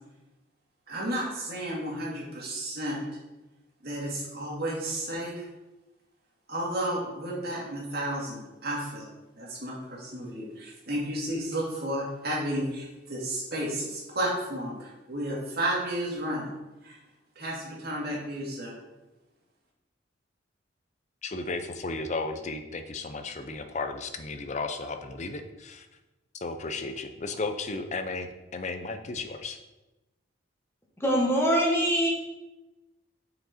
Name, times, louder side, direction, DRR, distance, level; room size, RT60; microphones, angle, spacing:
voice 1, 0.9-3.0 3.8-5.4 6.5-9.1 9.4-16.5 16.8-17.0 17.4-18.7, right 1 dB, 55° right, -3 dB, 2.0 m, -32 dB
voice 2, 21.2-25.9 26.4-28.3 28.5-29.6, left 3 dB, 35° left, 7 dB, 0.5 m, -34 dB
voice 3, 31.0-32.1, equal, 15° left, -1 dB, 1.3 m, -23 dB
6.4 x 4.8 x 4.2 m, 1.0 s
head